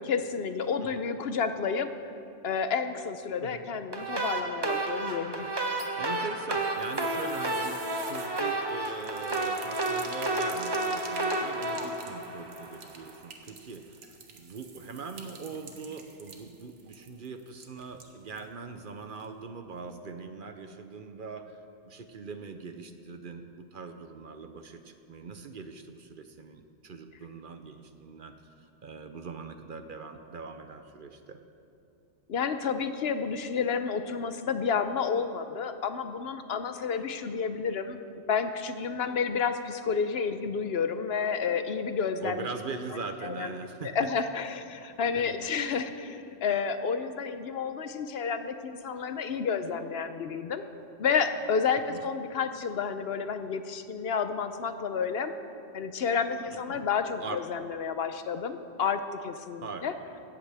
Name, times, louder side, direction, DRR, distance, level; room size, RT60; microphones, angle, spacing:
voice 1, 0.0-1.9 2.4-5.5 32.3-38.0 38.3-42.4 43.2-43.5 43.8-50.6 51.0-55.3 55.7-59.9, left 6 dB, 65° left, 9 dB, 0.9 m, -30 dB
sound 1, 3.9-13.0, right 2 dB, 25° right, 1.0 m, -31 dB
sound 2, 5.6-18.5 18.8-18.9 19.2-19.3, right 5 dB, 80° right, 1.4 m, -48 dB
voice 2, 5.9-21.6 21.8-31.4 42.2-44.1 45.1-45.5 51.9-52.1 56.5-56.8 57.2-57.7 59.6-59.9, right 4 dB, 50° right, 7 dB, 0.8 m, -42 dB
16.5 x 14.0 x 3.4 m, 2.6 s
omnidirectional pair, 1.2 m